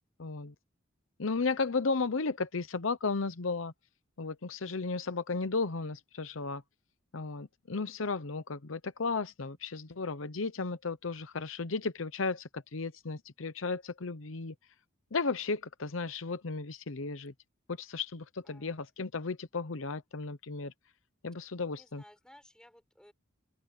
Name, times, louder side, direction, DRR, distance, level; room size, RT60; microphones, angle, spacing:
voice 1, 0.2-0.5 1.2-3.7 4.2-6.6 7.1-14.5 15.1-17.3 17.7-20.7 21.2-22.0, left 4 dB, 70° left, 0.8 m, -34 dB
voice 2, 18.4-18.8 21.7-23.1, left 1 dB, 5° left, 7.2 m, -58 dB
open air
head